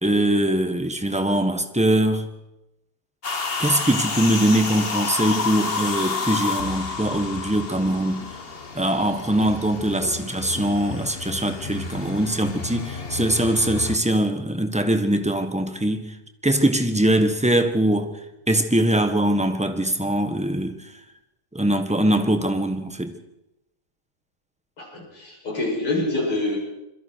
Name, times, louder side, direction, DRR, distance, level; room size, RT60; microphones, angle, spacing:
voice 1, 0.0-2.3 3.6-8.3 8.7-16.1 16.4-18.1 18.5-20.8 21.5-23.1, right 1 dB, 5° right, 0.9 m, -22 dB
sound 1, 3.2-14.0, left 4 dB, 30° left, 1.3 m, -30 dB
voice 2, 24.8-26.6, left 2 dB, 85° left, 8.5 m, -26 dB
27.0 x 22.0 x 4.7 m
omnidirectional pair, 2.4 m